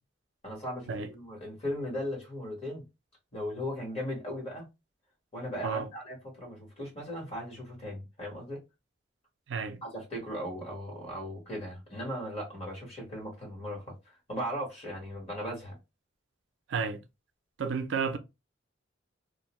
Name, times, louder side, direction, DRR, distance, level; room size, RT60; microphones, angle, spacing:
voice 1, 0.4-2.8 3.3-4.7 5.3-8.6 9.8-15.7, equal, 30° left, 1.4 m, -37 dB
voice 2, 9.5-9.8 16.7-17.0 17.6-18.2, right 5 dB, 70° right, 0.4 m, -31 dB
2.5 x 2.1 x 3.0 m
head